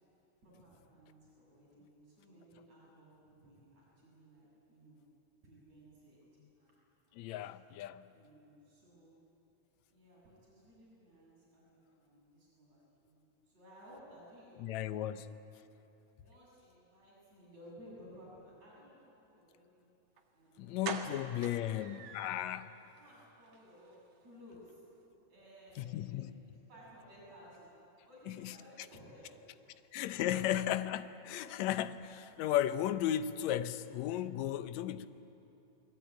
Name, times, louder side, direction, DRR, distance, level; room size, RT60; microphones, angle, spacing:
voice 1, 0.4-5.0 5.4-6.2 6.6-6.8 7.1-7.3 8.1-9.2 9.9-13.2 13.5-15.2 16.2-19.9 20.3-21.0 21.5-22.4 23.0-24.8 25.3-27.7 28.1-29.4 29.6-30.5, equal, 65° right, 8.4 m, -58 dB
voice 2, 7.1-8.1 14.6-15.2 20.6-22.6 25.8-26.6 28.3-28.5 29.9-35.1, left 11 dB, 75° left, 2.0 m, -35 dB
sound 1, 20.2-20.3 20.8-22.6 23.0-23.1 23.4-23.6 23.8-23.9, right 6 dB, 85° right, 3.1 m, -43 dB
29.5 x 20.5 x 9.1 m
omnidirectional pair, 3.4 m